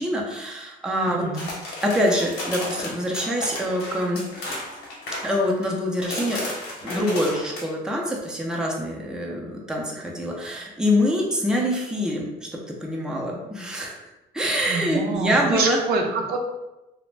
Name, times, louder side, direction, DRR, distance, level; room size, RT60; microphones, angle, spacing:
voice 1, 0.0-1.2 1.8-4.2 5.2-6.4 6.8-12.3 12.8-14.0 14.3-15.8, equal, 5° right, -2 dB, 0.5 m, -25 dB
voice 2, 1.1-1.5 14.7-16.4, right 4 dB, 65° right, 2 dB, 0.5 m, -26 dB
sound 1, 1.3-5.7 6.0-7.6, left 2 dB, 75° left, 1.0 m, -33 dB
2.4 x 2.0 x 3.2 m, 0.99 s
cardioid pair, 110°, 17 cm